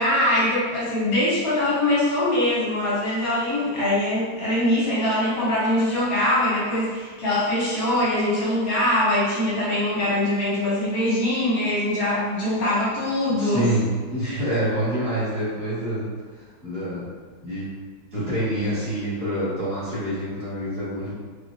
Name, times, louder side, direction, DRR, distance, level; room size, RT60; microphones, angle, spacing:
voice 1, 0.0-13.7 14.2-14.4, left 1 dB, 50° left, -9 dB, 1.2 m, -23 dB
voice 2, 13.4-16.1 16.6-17.1 17.4-17.7 18.1-21.1, right 1 dB, 5° left, -13 dB, 0.8 m, -26 dB
3.3 x 3.0 x 2.6 m, 1.5 s
omnidirectional pair, 2.4 m